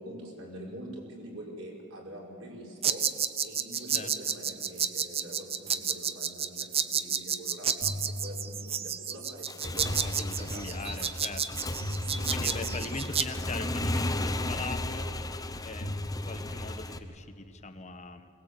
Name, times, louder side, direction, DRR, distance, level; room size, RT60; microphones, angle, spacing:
voice 1, 0.0-3.0 3.4-10.8 11.9-13.0, right 1 dB, 90° right, -2 dB, 5.5 m, -45 dB
sound 1, 2.8-13.3, right 8 dB, 30° right, 0.7 m, -31 dB
sound 2, 7.8-9.0 9.8-11.0 11.8-13.0 13.8-15.0 15.8-17.0, left 1 dB, 75° left, 2.5 m, -38 dB
Motorcycle / Engine, 9.4-17.0, left 1 dB, 20° left, 0.9 m, -35 dB
voice 2, 9.9-11.5 12.3-15.1 15.6-18.3, left 3 dB, 35° left, 7 dB, 1.2 m, -41 dB
21.5 x 19.5 x 8.3 m, 2.7 s
head